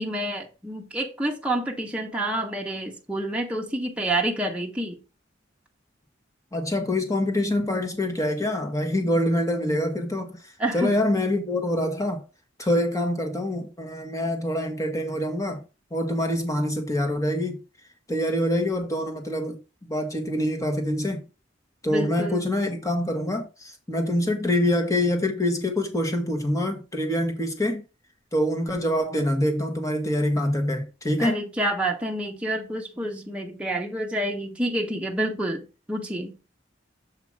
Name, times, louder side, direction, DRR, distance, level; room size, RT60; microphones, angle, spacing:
voice 1, 0.0-5.0 10.6-10.9 21.8-22.5 31.2-36.4, right 1 dB, 5° right, 1.1 m, -28 dB
voice 2, 6.5-10.4 10.7-12.2 12.6-15.6 15.9-17.6 18.1-19.6 19.8-21.2 21.8-27.8 28.3-31.4, left 1 dB, 15° left, 1.3 m, -25 dB
7.4 x 2.9 x 6.0 m
head